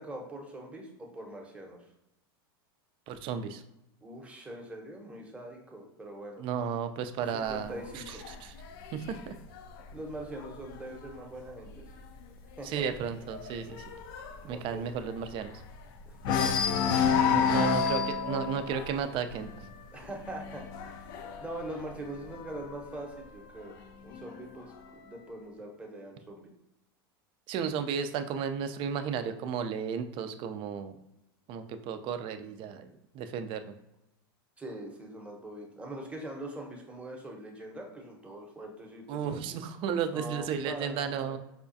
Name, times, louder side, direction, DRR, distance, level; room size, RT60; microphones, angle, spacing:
voice 1, 0.0-1.9 4.0-6.4 7.3-8.2 9.9-11.9 12.6-12.9 14.4-14.9 16.1-16.5 17.0-17.7 19.9-21.0 21.4-23.7 24.0-26.5 34.6-39.4 40.1-41.4, right 1 dB, 10° right, 0 dB, 0.8 m, -43 dB
voice 2, 3.1-3.6 6.4-8.5 8.9-9.4 12.6-13.8 14.4-15.5 17.3-19.5 27.5-31.0 31.5-33.7 39.1-41.4, right 7 dB, 40° right, 9 dB, 0.4 m, -34 dB
sound 1, 7.5-11.1 11.5-11.8 12.1-12.2 12.6-15.8 16.2-22.7 23.6-24.6, left 6 dB, 60° left, 0.4 m, -31 dB
4.8 x 2.3 x 2.6 m, 0.88 s
hypercardioid pair, 115°, 13 cm